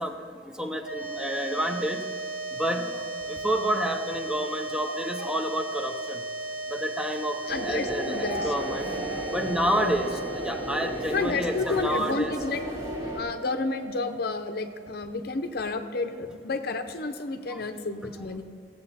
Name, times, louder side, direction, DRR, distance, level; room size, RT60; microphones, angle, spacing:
voice 1, 0.0-2.1 2.5-6.2 6.7-8.9 9.3-10.1 10.4-12.3 12.9-13.0 17.5-17.6, equal, 5° right, 5 dB, 0.7 m, -29 dB
sound 1, 0.8-15.2, right 2 dB, 65° right, 1.5 m, -36 dB
voice 2, 7.4-8.8 9.8-10.0 11.1-12.6 13.1-18.4, left 3 dB, 60° left, 8 dB, 0.7 m, -31 dB
sound 2, 7.5-13.2, equal, 25° right, 1.8 m, -34 dB
17.0 x 7.9 x 4.2 m, 2.1 s
head